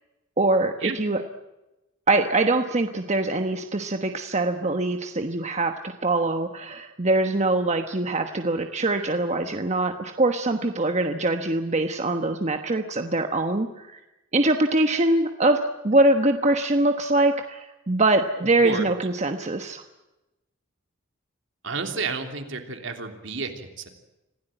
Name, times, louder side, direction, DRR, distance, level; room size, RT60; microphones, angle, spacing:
voice 1, 0.4-1.2 2.1-14.0 14.3-15.6 15.8-19.8, right 2 dB, 35° right, 6 dB, 1.2 m, -23 dB
voice 2, 18.4-18.8 21.6-23.9, right 4 dB, 65° right, 5 dB, 3.2 m, -31 dB
26.0 x 16.5 x 9.1 m, 0.99 s
head